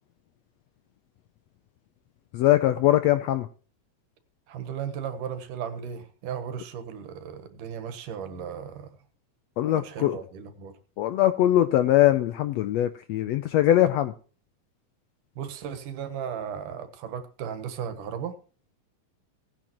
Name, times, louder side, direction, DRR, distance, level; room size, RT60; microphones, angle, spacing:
voice 1, 2.3-3.5 9.6-10.2 11.0-14.1, left 13 dB, 80° left, 11 dB, 1.5 m, -22 dB
voice 2, 4.5-8.9 9.7-10.7 15.4-18.3, right 8 dB, 85° right, 10 dB, 2.9 m, -35 dB
17.5 x 9.5 x 3.0 m, 0.38 s
omnidirectional pair, 3.6 m